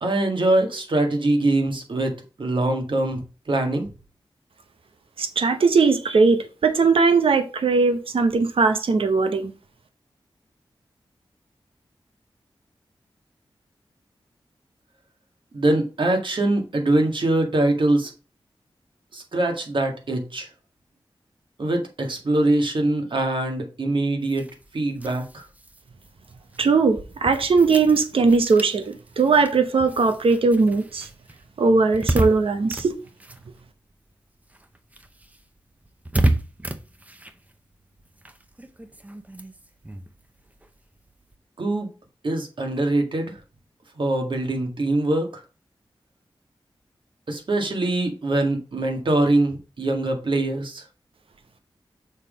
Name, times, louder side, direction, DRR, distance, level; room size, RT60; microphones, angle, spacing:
voice 1, 0.0-3.2 3.5-3.9 15.5-18.1 19.1-20.5 21.6-24.5 24.7-25.4 41.6-41.9 42.2-43.4 44.0-45.4 47.3-50.8, right 2 dB, 60° right, 1.9 m, -23 dB
voice 2, 5.2-9.5 26.6-31.1 31.6-32.9, right 4 dB, 80° right, 0.9 m, -19 dB
sound 1, 24.2-34.1 34.4-41.4, right 1 dB, 15° right, 0.8 m, -32 dB
6.4 x 3.8 x 5.1 m
wide cardioid pair, 75°, 9 cm